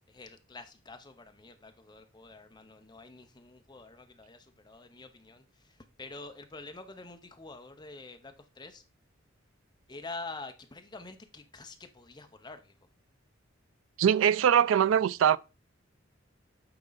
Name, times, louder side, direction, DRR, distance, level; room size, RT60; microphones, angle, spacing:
voice 1, 0.1-8.8 9.9-12.7, left 3 dB, 20° left, 0.8 m, -47 dB
voice 2, 14.0-15.4, right 9 dB, 75° right, 0.3 m, -22 dB
8.7 x 3.8 x 4.0 m
head